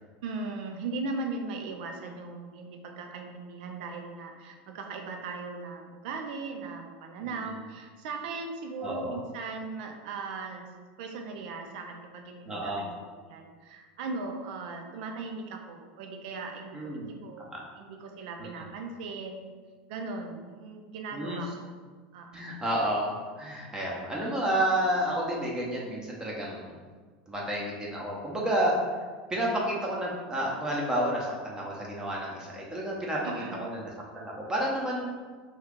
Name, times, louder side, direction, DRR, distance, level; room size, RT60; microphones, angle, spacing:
voice 1, 0.2-10.7 11.0-17.5 17.8-19.5 19.9-21.7 22.1-22.4 33.2-33.7, right 3 dB, 70° right, 3 dB, 0.5 m, -38 dB
voice 2, 8.8-9.2 12.5-12.9 16.7-17.1 17.4-17.6 18.4-18.5 21.1-21.4 22.3-26.8 27.3-29.0 29.3-35.2, right 1 dB, 15° right, -4 dB, 0.7 m, -30 dB
2.9 x 2.3 x 3.6 m, 1.5 s
supercardioid pair, 115°, 5 cm